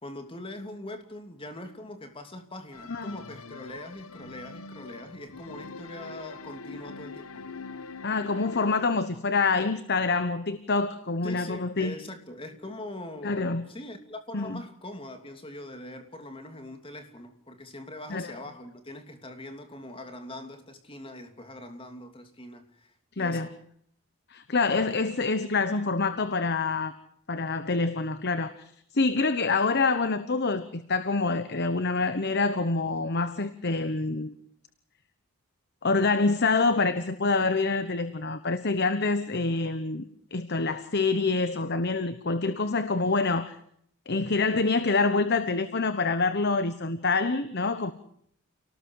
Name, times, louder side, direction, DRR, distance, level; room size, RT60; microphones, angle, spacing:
voice 1, 0.0-7.4 11.2-23.5, left 1 dB, 25° left, 6 dB, 2.9 m, -42 dB
sound 1, 2.7-8.8, left 4 dB, 65° left, 1.2 m, -43 dB
voice 2, 8.0-11.9 13.2-13.6 14.3-14.6 18.1-18.3 23.2-23.5 24.3-26.9 27.3-28.6 28.9-34.3 35.8-40.0 40.3-43.6 44.1-47.9, left 3 dB, 50° left, 12 dB, 1.1 m, -26 dB
29.5 x 18.5 x 4.9 m, 0.67 s
head